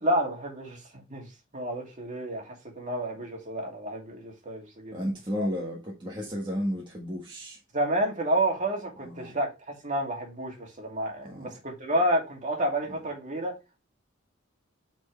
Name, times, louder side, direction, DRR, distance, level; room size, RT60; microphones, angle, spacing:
voice 1, 0.0-1.3 1.5-5.0 5.3-5.5 7.7-9.5 9.8-13.5, right 1 dB, 40° right, 2.3 m, -30 dB
voice 2, 4.9-7.6 9.0-9.4 11.2-11.5 12.9-13.0, equal, 25° right, 1.5 m, -33 dB
8.5 x 4.5 x 3.1 m
head